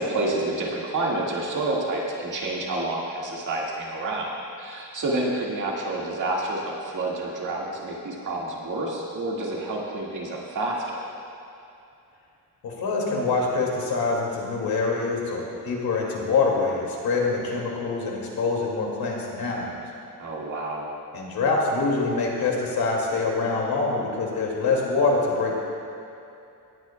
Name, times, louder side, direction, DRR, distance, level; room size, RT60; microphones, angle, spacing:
voice 1, 0.0-4.3 4.6-11.0 20.2-20.9, right 2 dB, 55° right, -3 dB, 1.8 m, -29 dB
voice 2, 12.6-19.8 21.1-25.5, left 3 dB, 75° left, -2 dB, 2.3 m, -25 dB
18.0 x 9.9 x 2.2 m, 2.7 s
cardioid pair, 115°, 36 cm